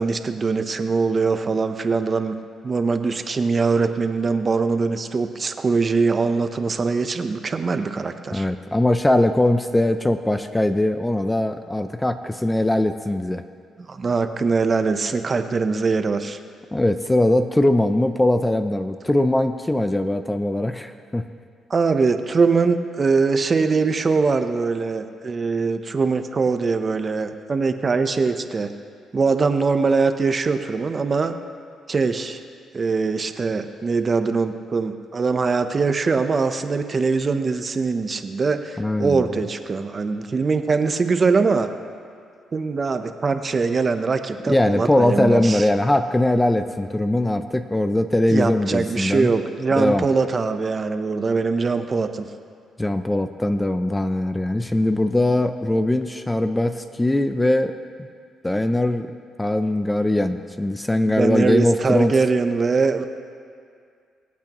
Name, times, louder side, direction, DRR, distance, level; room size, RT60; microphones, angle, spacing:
voice 1, 0.0-2.4 2.6-8.5 13.8-16.4 21.7-28.7 29.1-31.4 31.9-32.4 32.7-41.7 42.5-45.7 48.3-52.3 61.1-63.1, right 4 dB, 35° right, 8 dB, 0.7 m, -22 dB
voice 2, 8.3-13.4 16.7-21.2 38.8-39.3 44.5-49.3 49.8-50.1 52.8-57.7 58.4-59.1 59.4-62.1, left 1 dB, 10° left, 9 dB, 0.5 m, -21 dB
24.0 x 8.4 x 3.0 m, 2.2 s
cardioid pair, 90°, 0 cm